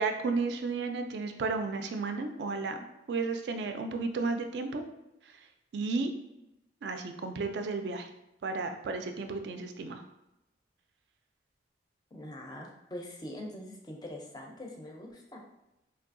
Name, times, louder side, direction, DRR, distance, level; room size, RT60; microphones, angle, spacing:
voice 1, 0.0-2.8 3.1-4.8 5.7-6.1 6.8-8.1 8.4-10.0, right 4 dB, 60° right, 7 dB, 0.3 m, -33 dB
voice 2, 12.1-15.4, left 1 dB, 20° left, 0 dB, 0.4 m, -43 dB
3.3 x 2.6 x 2.5 m, 0.91 s
head